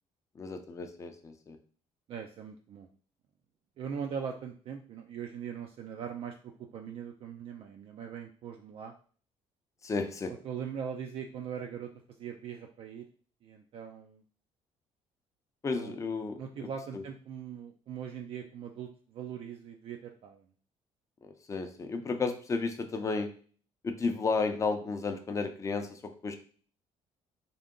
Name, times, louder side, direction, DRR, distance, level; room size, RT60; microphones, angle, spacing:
voice 1, 0.3-1.6 9.8-10.3 15.6-16.4 16.9-17.0 21.2-23.3 23.8-26.4, left 4 dB, 25° left, 6 dB, 0.5 m, -33 dB
voice 2, 2.1-2.9 3.8-8.9 10.3-11.9 12.2-13.1 13.4-14.2 15.7-16.0 16.4-20.5, right 7 dB, 50° right, 3 dB, 0.4 m, -41 dB
3.8 x 2.2 x 3.6 m, 0.43 s
cardioid pair, 125°, 12 cm